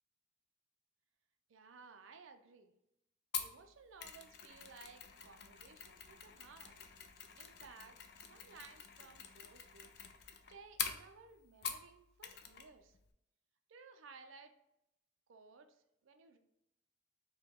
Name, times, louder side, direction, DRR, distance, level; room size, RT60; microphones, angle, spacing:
voice 1, 1.5-2.7 3.4-10.0 10.5-13.0 13.7-14.5 15.3-16.4, right 4 dB, 75° right, 7 dB, 0.4 m, -58 dB
Mechanisms, 3.3-11.9 12.2-12.7 12.9-13.1, left 8 dB, 55° left, 0.4 m, -46 dB
4.8 x 2.2 x 3.6 m, 0.82 s
head